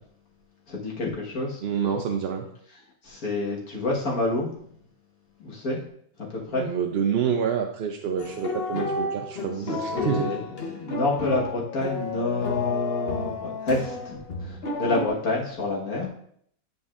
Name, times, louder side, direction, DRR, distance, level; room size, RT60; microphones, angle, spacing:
voice 1, 0.7-1.6 3.0-4.5 5.4-5.8 6.2-6.7 9.9-16.1, left 2 dB, 75° left, -3 dB, 1.9 m, -28 dB
voice 2, 1.6-2.5 6.5-10.3, right 7 dB, 60° right, 3 dB, 0.6 m, -27 dB
sound 1, 8.2-15.1, left 4 dB, 45° left, 1.1 m, -31 dB
9.5 x 5.2 x 2.5 m, 0.67 s
omnidirectional pair, 1.5 m